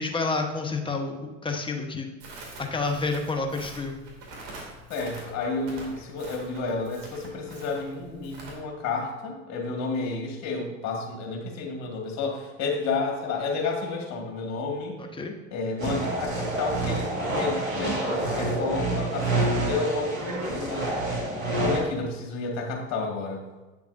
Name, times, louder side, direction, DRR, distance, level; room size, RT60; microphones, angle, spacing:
voice 1, 0.0-2.1 2.6-4.0 15.0-15.4, left 3 dB, 15° left, 3 dB, 1.0 m, -29 dB
Crackle, 2.2-8.5, right 2 dB, 55° right, 2.5 m, -45 dB
voice 2, 4.9-15.0 15.5-20.9 21.6-23.5, left 3 dB, 45° left, 0 dB, 2.0 m, -31 dB
sound 1, 15.8-21.8, right 2 dB, 85° right, 2.0 m, -27 dB
8.4 x 6.9 x 2.6 m, 1.2 s
hypercardioid pair, 75°, 38 cm